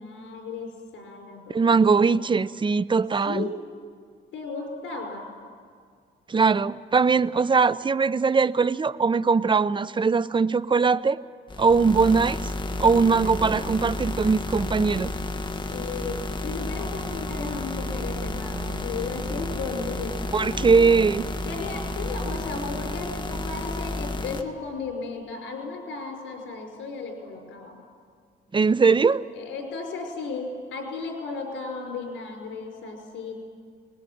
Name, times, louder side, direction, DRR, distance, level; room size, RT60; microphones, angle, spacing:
voice 1, 0.0-2.3 3.2-3.6 4.3-5.3 13.2-13.6 15.7-21.0 21.4-27.8 29.1-33.5, left 4 dB, 75° left, 2 dB, 5.2 m, -35 dB
voice 2, 1.5-3.5 6.3-11.2 11.6-12.5 12.8-15.1 20.3-21.2 28.5-29.2, right 4 dB, 25° right, 16 dB, 0.6 m, -21 dB
sound 1, 11.5-24.4, left 2 dB, 25° left, 1.7 m, -31 dB
sound 2, 16.7-22.9, right 6 dB, 55° right, 2.1 m, -44 dB
22.5 x 20.0 x 9.4 m, 2.1 s
cardioid pair, 90°, 20 cm